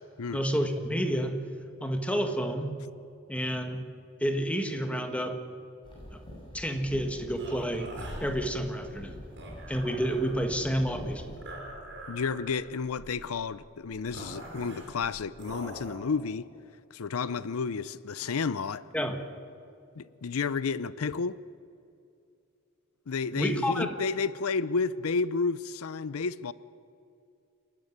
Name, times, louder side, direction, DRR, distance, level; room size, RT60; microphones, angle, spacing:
voice 1, 0.3-1.4 1.8-2.8 3.3-3.8 4.2-5.4 6.1-6.2 6.5-7.9 8.2-9.2 9.7-11.2 18.9-19.2 23.3-23.9, equal, 5° left, 1.5 m, -29 dB
sound 1, 5.8-11.4, equal, 25° left, 7.2 m, -45 dB
sound 2, 7.4-16.0, right 1 dB, 55° right, 6.1 m, -44 dB
voice 2, 12.1-16.5 16.9-18.9 20.0-21.4 23.1-26.5, left 5 dB, 90° left, 0.6 m, -31 dB
28.0 x 12.0 x 9.5 m
head